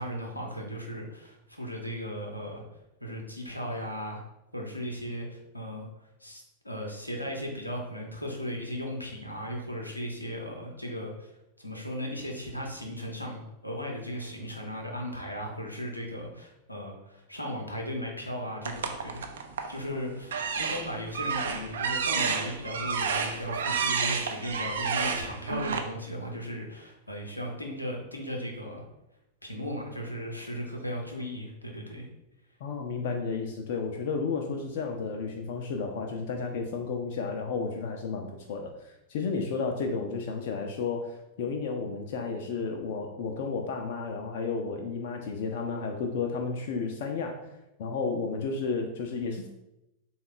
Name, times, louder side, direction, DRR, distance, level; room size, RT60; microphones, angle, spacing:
voice 1, 0.0-2.6 3.0-4.2 4.5-5.9 6.2-11.3 11.6-19.3 19.7-28.8 29.4-32.1, equal, 85° left, 0 dB, 0.7 m, -36 dB
sound 1, 18.6-19.8 20.2-25.8, right 5 dB, 65° right, 0.4 m, -30 dB
voice 2, 32.6-41.1 41.4-47.5 47.8-49.5, left 4 dB, 50° left, 3 dB, 0.4 m, -32 dB
3.7 x 2.3 x 3.6 m, 0.90 s
figure-of-eight pair, 90°, 0 cm